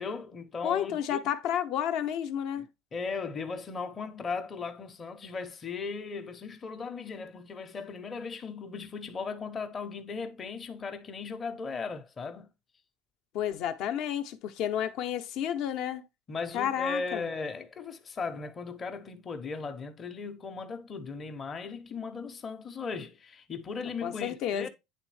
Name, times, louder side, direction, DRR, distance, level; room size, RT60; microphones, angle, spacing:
voice 1, 0.0-1.2 2.6-2.7 2.9-12.5 16.3-24.7, left 4 dB, 20° left, 0.7 m, -37 dB
voice 2, 0.6-2.7 13.3-16.0 16.5-17.3 24.0-24.7, left 10 dB, 55° left, 0.7 m, -31 dB
9.2 x 3.5 x 3.2 m
cardioid pair, 155°, 0 cm